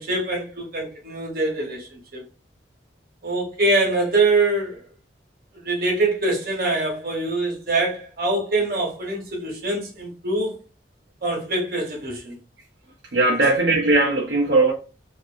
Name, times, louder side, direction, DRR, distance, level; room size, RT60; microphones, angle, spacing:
voice 1, 0.0-2.2 3.2-4.8 5.5-10.5 11.2-12.4 13.4-13.5, right 2 dB, 55° right, 1.0 m, -24 dB
voice 2, 13.1-14.7, right 2 dB, 80° right, 0.6 m, -18 dB
2.6 x 2.5 x 2.4 m
head